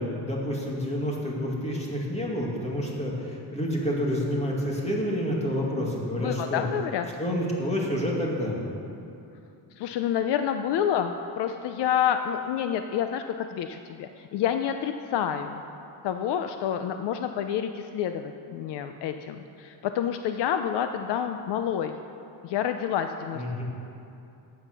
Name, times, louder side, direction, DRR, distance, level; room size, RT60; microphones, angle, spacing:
voice 1, 0.0-6.6 7.2-8.6 23.3-23.6, equal, 15° left, -2 dB, 2.3 m, -29 dB
voice 2, 6.2-7.1 9.8-15.6 16.0-21.9 22.4-23.6, left 9 dB, 65° left, 7 dB, 0.7 m, -28 dB
13.0 x 8.8 x 6.1 m, 2.7 s
cardioid pair, 135°, 44 cm